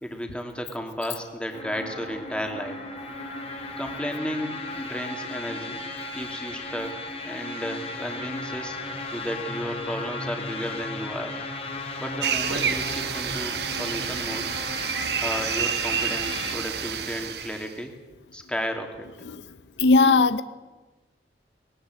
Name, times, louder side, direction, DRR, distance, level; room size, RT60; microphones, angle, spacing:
voice 1, 0.0-2.8 3.8-5.8 6.1-8.8 9.1-11.4 12.0-14.5 15.2-17.9 18.3-19.1, equal, 5° left, 3 dB, 2.5 m, -33 dB
sound 1, 1.5-16.6, left 2 dB, 35° left, 2.4 m, -36 dB
sound 2, 12.2-17.7, right 7 dB, 65° right, 1.4 m, -29 dB
voice 2, 19.8-20.4, left 3 dB, 80° left, 14 dB, 0.7 m, -18 dB
20.0 x 18.0 x 7.8 m, 1.2 s
head